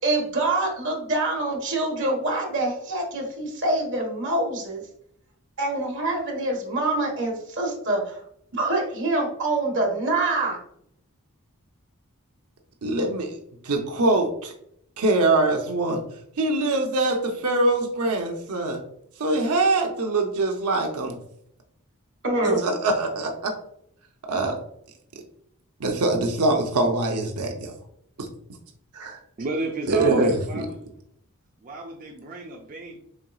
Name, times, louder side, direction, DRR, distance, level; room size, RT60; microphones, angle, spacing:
voice 1, 0.0-4.8 5.6-8.2 8.5-10.6 22.2-22.6, right 2 dB, 55° right, 0 dB, 1.3 m, -25 dB
voice 2, 12.8-13.4 13.6-14.5 15.0-16.0 16.4-18.8 19.2-21.2 22.4-23.5 24.3-24.6 25.8-27.7 28.2-28.3 28.9-29.2 29.9-30.7, right 2 dB, 90° right, 2 dB, 0.7 m, -23 dB
voice 3, 29.4-30.8 31.6-33.0, right 3 dB, 40° right, 0 dB, 0.5 m, -32 dB
4.4 x 3.7 x 2.3 m, 0.71 s
head